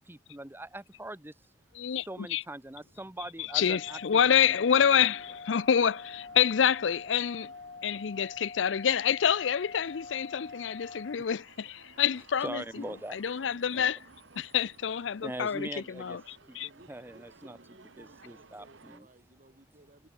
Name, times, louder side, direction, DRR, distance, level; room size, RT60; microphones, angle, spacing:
voice 1, 0.1-1.5 2.0-4.6 12.4-13.2 13.7-13.9 14.4-14.5 15.2-17.6 18.0-19.1, right 1 dB, 10° right, 1.1 m, -42 dB
voice 2, 1.8-2.4 3.5-5.2 5.5-7.5 7.8-12.6 13.1-14.0 14.4-15.7 16.0-16.2 16.6-16.7, left 8 dB, 75° left, 0.5 m, -27 dB
sound 1, 3.5-11.2, left 4 dB, 40° left, 1.5 m, -45 dB
voice 3, 3.6-5.6 5.9-6.1 16.5-20.1, right 1 dB, 45° right, 3.4 m, -59 dB
sound 2, 4.2-19.0, right 3 dB, 85° right, 1.7 m, -58 dB
head